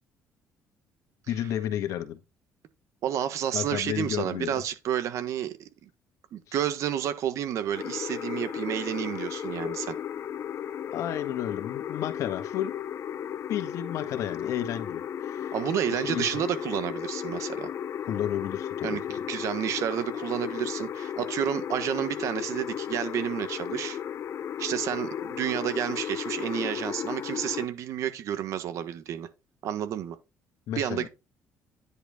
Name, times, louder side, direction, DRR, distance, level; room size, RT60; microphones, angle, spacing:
voice 1, 1.3-2.2 3.5-4.6 6.5-6.6 10.9-12.7 13.5-15.5 16.0-16.3 18.1-19.2 30.7-31.1, left 11 dB, 70° left, 1.6 m, -32 dB
voice 2, 3.0-5.7 6.3-10.0 15.5-17.7 18.8-24.0 24.6-29.3 29.6-30.2 30.8-31.1, right 10 dB, 70° right, 1.4 m, -30 dB
sound 1, 7.7-27.7, left 9 dB, 55° left, 0.6 m, -35 dB
10.0 x 4.9 x 3.7 m
supercardioid pair, 80°, 6 cm